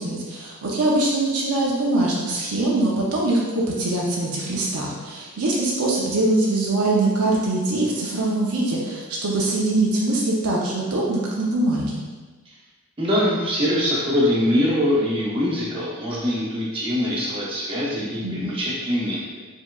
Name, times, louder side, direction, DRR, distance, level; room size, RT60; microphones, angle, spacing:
voice 1, 0.0-12.0 18.2-18.5, right 2 dB, 85° right, -4 dB, 0.6 m, -23 dB
voice 2, 13.0-19.2, left 1 dB, 25° right, -7 dB, 0.9 m, -23 dB
4.5 x 3.6 x 2.3 m, 1.3 s
head